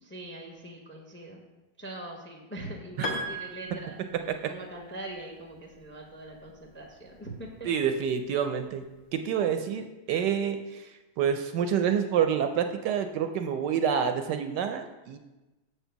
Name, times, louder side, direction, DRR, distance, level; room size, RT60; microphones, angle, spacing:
voice 1, 0.0-1.4 1.8-7.5, right 1 dB, 10° left, 1 dB, 0.5 m, -42 dB
Piano, 3.0-4.7, equal, 50° left, 1.2 m, -36 dB
voice 2, 7.6-8.8 9.1-15.2, right 8 dB, 75° right, 7 dB, 1.1 m, -28 dB
6.9 x 4.5 x 6.8 m, 1.1 s
omnidirectional pair, 2.0 m